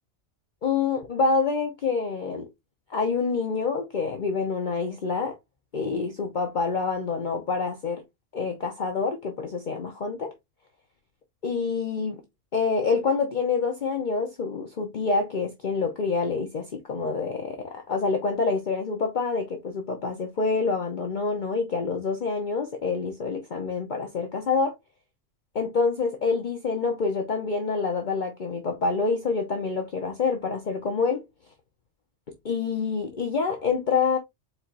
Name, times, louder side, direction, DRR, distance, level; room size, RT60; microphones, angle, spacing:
voice 1, 0.6-2.5 2.9-5.4 5.7-8.0 8.3-10.3 11.4-12.2 12.5-24.8 25.5-31.2 32.4-34.2, left 4 dB, 45° left, 0.9 m, -27 dB
4.6 x 4.3 x 2.5 m
omnidirectional pair, 1.2 m